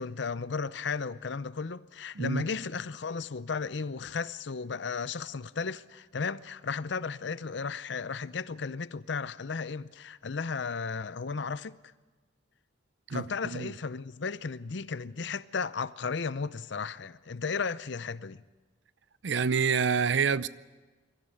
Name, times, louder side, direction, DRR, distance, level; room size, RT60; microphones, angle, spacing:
voice 1, 0.0-11.8 13.1-18.4, left 5 dB, 65° left, 0.6 m, -34 dB
voice 2, 19.2-20.5, right 6 dB, 65° right, 0.6 m, -27 dB
23.0 x 14.5 x 9.9 m
head